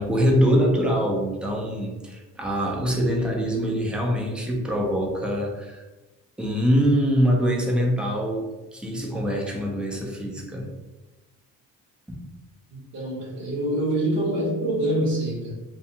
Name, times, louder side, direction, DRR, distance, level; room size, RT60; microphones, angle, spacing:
voice 1, 0.0-5.8 6.4-10.7, equal, 5° right, 0 dB, 0.4 m, -24 dB
voice 2, 12.7-15.5, right 1 dB, 50° right, -6 dB, 0.9 m, -25 dB
2.4 x 2.3 x 2.7 m, 1.1 s
cardioid pair, 105°, 37 cm